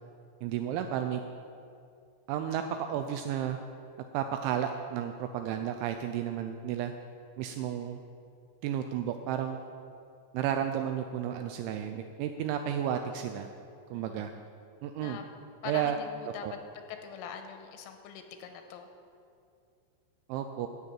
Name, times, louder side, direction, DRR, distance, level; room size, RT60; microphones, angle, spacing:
voice 1, 0.4-1.2 2.3-2.6 2.9-3.6 4.1-6.9 7.4-8.0 8.6-9.6 10.3-13.5 13.9-14.3 14.8-15.2 15.7-16.0 16.4-16.5 20.3-20.7, right 10 dB, 85° right, 6 dB, 2.7 m, -32 dB
voice 2, 13.9-14.3 15.0-15.2 15.6-16.5 16.7-18.9, left 7 dB, 85° left, 6 dB, 3.3 m, -43 dB
11.5 x 6.7 x 8.9 m, 2.4 s
omnidirectional pair, 5.9 m